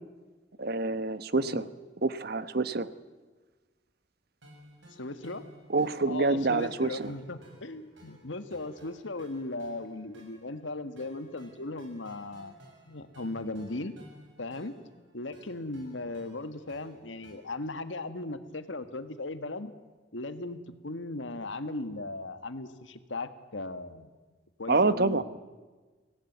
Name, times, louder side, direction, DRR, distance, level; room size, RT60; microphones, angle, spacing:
voice 1, 0.6-1.6 2.0-2.9 5.7-7.1 24.7-25.2, right 3 dB, 55° right, 13 dB, 1.0 m, -27 dB
sound 1, 4.4-17.3, equal, 85° right, 7.5 m, -56 dB
voice 2, 5.0-5.5 6.1-12.6 12.8-13.9 14.4-14.7 15.1-19.7 20.1-24.1 24.6-25.2, left 2 dB, 85° left, 9 dB, 1.6 m, -37 dB
24.5 x 17.5 x 9.3 m, 1.3 s
head